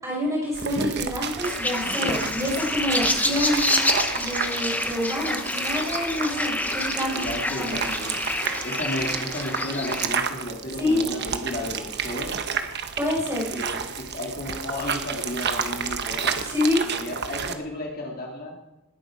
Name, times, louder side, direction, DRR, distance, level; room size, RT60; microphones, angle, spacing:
voice 1, 0.0-3.7 4.1-7.9 10.8-11.0 13.0-13.5 16.4-16.8, left 1 dB, 15° right, -3 dB, 5.5 m, -27 dB
sound 1, 0.5-17.5, right 6 dB, 50° right, 1.1 m, -31 dB
sound 2, 1.4-10.1, left 2 dB, 5° left, 0.9 m, -28 dB
voice 2, 1.8-2.2 7.1-8.3 8.6-12.3 13.5-16.4 16.8-18.5, left 1 dB, 40° left, -1 dB, 2.5 m, -33 dB
19.5 x 10.5 x 5.1 m, 0.99 s
head